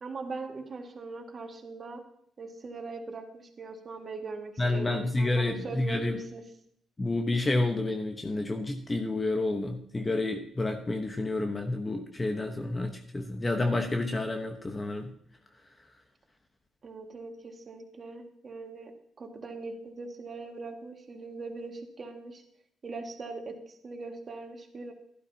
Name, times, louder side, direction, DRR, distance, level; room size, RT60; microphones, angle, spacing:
voice 1, 0.0-2.0 2.4-6.4 16.8-18.9 19.2-22.4 22.8-24.9, right 3 dB, 40° right, 3 dB, 2.0 m, -41 dB
voice 2, 4.6-6.1 7.0-15.1, left 2 dB, 20° left, 4 dB, 1.1 m, -29 dB
12.0 x 11.5 x 2.9 m, 0.69 s
cardioid pair, 90°, 0 cm